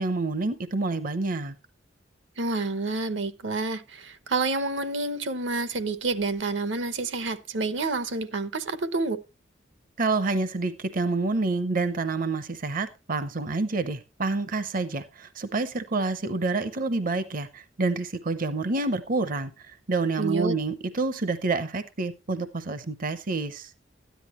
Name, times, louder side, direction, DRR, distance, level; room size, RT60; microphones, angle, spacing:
voice 1, 0.0-1.5 10.0-23.7, right 3 dB, 50° right, 0.7 m, -28 dB
voice 2, 2.4-9.2 20.2-20.5, right 3 dB, 80° right, 1.0 m, -28 dB
13.0 x 10.5 x 3.0 m
head